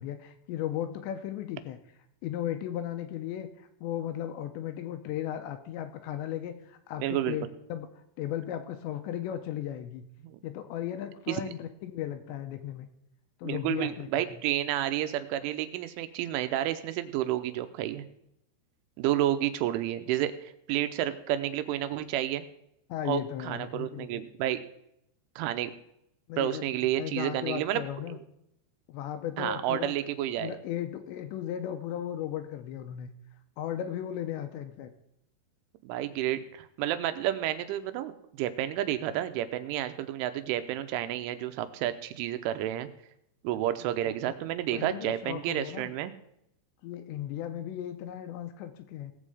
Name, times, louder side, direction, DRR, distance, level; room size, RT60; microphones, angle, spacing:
voice 1, 0.0-1.8 2.2-7.9 8.2-10.1 10.4-12.9 13.4-14.2 22.9-24.3 26.3-26.6 27.0-28.2 28.9-29.9 30.4-33.1 33.6-34.9 44.1-44.3 44.7-45.9 46.8-49.1, left 11 dB, 80° left, 8 dB, 2.8 m, -36 dB
voice 2, 7.0-7.5 10.3-10.4 11.3-11.4 13.4-18.0 19.0-22.4 23.1-24.6 25.4-25.7 26.4-27.8 28.1-28.2 29.4-30.5 35.8-42.9 43.4-46.1, right 12 dB, 85° right, 10 dB, 3.2 m, -30 dB
18.0 x 7.6 x 4.9 m, 0.76 s
omnidirectional pair, 5.6 m